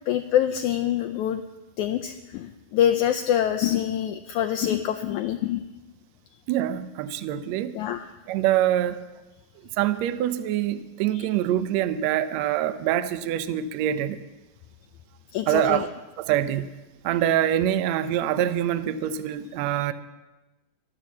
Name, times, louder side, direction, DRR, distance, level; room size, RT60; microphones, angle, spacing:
voice 1, 0.1-1.4 1.8-5.7 7.8-8.1 11.2-11.3 15.3-15.9, left 10 dB, 80° left, 7 dB, 1.7 m, -25 dB
voice 2, 6.5-7.8 8.3-9.0 9.8-14.2 15.5-15.9 16.2-16.8 17.0-19.9, right 11 dB, 85° right, 11 dB, 1.5 m, -25 dB
12.5 x 12.0 x 7.1 m, 1.1 s
omnidirectional pair, 4.0 m